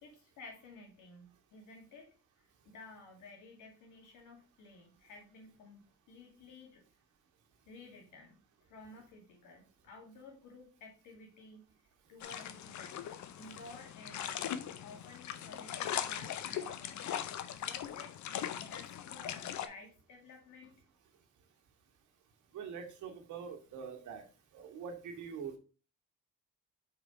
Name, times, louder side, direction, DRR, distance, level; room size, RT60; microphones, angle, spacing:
voice 1, 0.0-6.8 7.7-8.4 8.7-13.1 13.4-17.2 17.6-18.2 18.6-20.8, left 3 dB, 90° left, 2 dB, 2.2 m, -54 dB
sound 1, 12.2-19.7, left 10 dB, 70° left, 0.7 m, -40 dB
voice 2, 22.5-24.2 24.5-25.6, right 6 dB, 80° right, 3 dB, 1.6 m, -44 dB
4.9 x 4.7 x 4.3 m, 0.35 s
cardioid pair, 90°, 30 cm